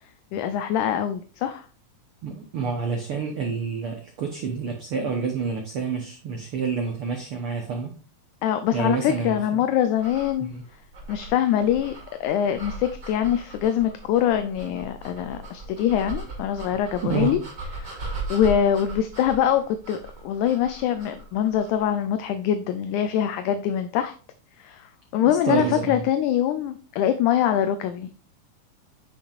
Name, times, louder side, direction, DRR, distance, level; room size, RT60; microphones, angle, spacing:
voice 1, 0.3-1.7 8.4-10.5 11.1-11.9 12.2-17.4 17.8-24.1 24.6-28.1, left 10 dB, 80° left, 9 dB, 1.8 m, -24 dB
voice 2, 2.2-7.9 8.7-9.6 10.4-10.6 17.0-17.4 25.2-26.0, right 5 dB, 80° right, 3 dB, 1.2 m, -28 dB
sound 1, 10.0-21.9, right 2 dB, 35° right, 2.4 m, -38 dB
9.1 x 5.5 x 2.4 m, 0.39 s
omnidirectional pair, 3.8 m